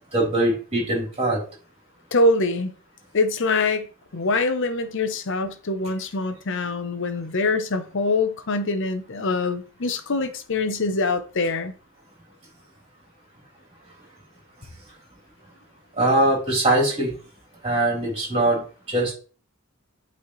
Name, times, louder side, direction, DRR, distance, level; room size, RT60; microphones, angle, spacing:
voice 1, 0.1-1.4 15.9-17.1 17.6-19.1, right 1 dB, 30° right, 3.8 m, -22 dB
voice 2, 2.1-2.7 3.1-3.9 4.1-11.7, left 3 dB, 60° left, 0.8 m, -24 dB
8.5 x 4.2 x 3.2 m
head